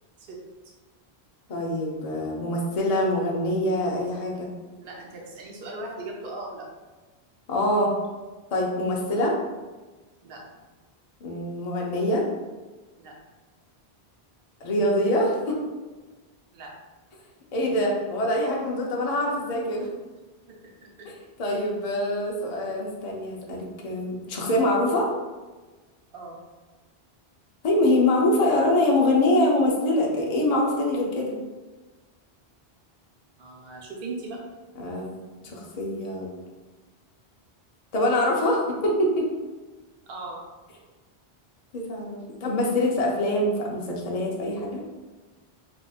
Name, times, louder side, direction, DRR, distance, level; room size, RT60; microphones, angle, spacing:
voice 1, 1.5-4.5 7.5-7.9 8.5-9.3 11.2-12.3 14.6-15.6 17.5-19.9 21.4-25.1 27.6-31.3 34.8-35.1 35.4-36.3 37.9-39.3 41.7-44.8, left 1 dB, 45° left, -2 dB, 0.7 m, -24 dB
voice 2, 4.8-6.7 10.2-10.5 13.0-13.2 16.5-16.7 20.5-21.1 26.1-26.4 33.4-34.4 40.1-40.4, right 2 dB, 65° right, -1 dB, 0.9 m, -38 dB
5.0 x 2.5 x 2.4 m, 1.3 s
omnidirectional pair, 1.1 m